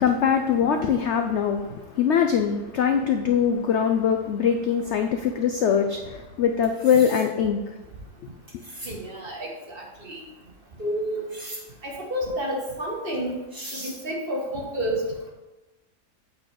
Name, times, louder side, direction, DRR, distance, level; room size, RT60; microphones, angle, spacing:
voice 1, 0.0-7.7, left 7 dB, 70° left, 5 dB, 0.6 m, -22 dB
sound 1, 6.6-7.3 8.5-8.9 11.3-11.6 13.1-13.2 13.5-14.0, right 1 dB, 15° right, 1.4 m, -39 dB
voice 2, 8.8-10.2 10.8-11.3 11.8-13.3 13.7-15.3, equal, 35° right, -2 dB, 1.5 m, -30 dB
8.5 x 4.3 x 4.8 m, 1.1 s
omnidirectional pair, 1.8 m